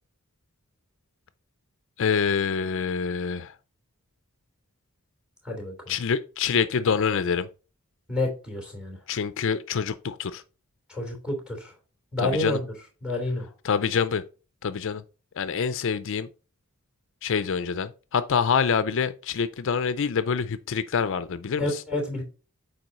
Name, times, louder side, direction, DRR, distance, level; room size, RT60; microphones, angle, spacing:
voice 1, 2.0-3.5 5.9-7.5 9.1-10.4 12.2-12.6 13.6-14.2 14.6-15.0 15.4-16.3 17.2-21.8, left 6 dB, 60° left, 0.4 m, -26 dB
voice 2, 5.4-5.9 8.1-9.0 10.9-11.7 12.1-12.7 13.0-13.5 21.6-22.2, left 2 dB, 5° right, 3.1 m, -29 dB
7.7 x 4.6 x 4.0 m
head